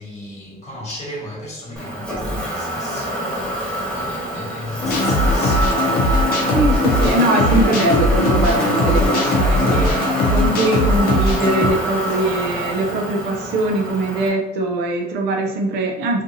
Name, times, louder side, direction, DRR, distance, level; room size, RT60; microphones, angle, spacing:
voice 1, 0.0-6.2, left 1 dB, 40° left, 1.2 m, -35 dB
Motor vehicle (road), 1.8-14.3, right 1 dB, 5° left, 1.1 m, -24 dB
sound 1, 4.8-11.7, left 1 dB, 60° left, 0.6 m, -19 dB
voice 2, 6.5-16.2, right 2 dB, 80° right, 0.6 m, -21 dB
2.6 x 2.5 x 2.6 m
cardioid pair, 110°, 17 cm